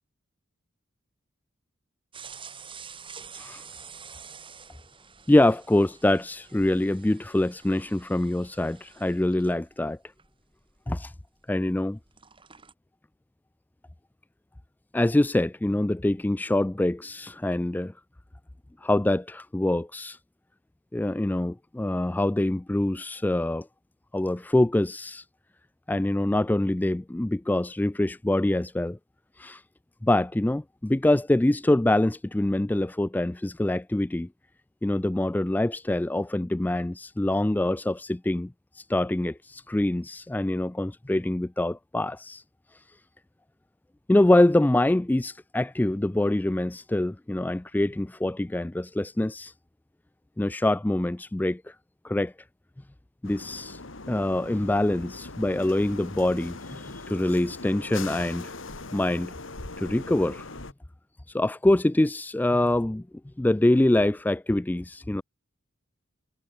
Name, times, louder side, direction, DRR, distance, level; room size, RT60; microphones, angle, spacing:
sound 1, 2.1-11.7 12.0-12.7, right 6 dB, 25° right, 5.8 m, -48 dB
voice 1, 5.3-10.0 10.9-11.1 11.5-12.0 14.9-17.9 18.8-20.2 20.9-23.7 24.1-25.2 25.9-29.0 29.4-29.6 30.0-34.3 34.8-42.4 44.1-49.5 50.4-51.8 52.0-52.3 53.2-53.8 54.1-58.5 58.9-59.3 59.8-60.5 61.3-63.0 63.4-65.2, left 1 dB, 10° left, 0.3 m, -25 dB
sound 2, 53.2-60.7, left 3 dB, 75° left, 2.1 m, -41 dB
head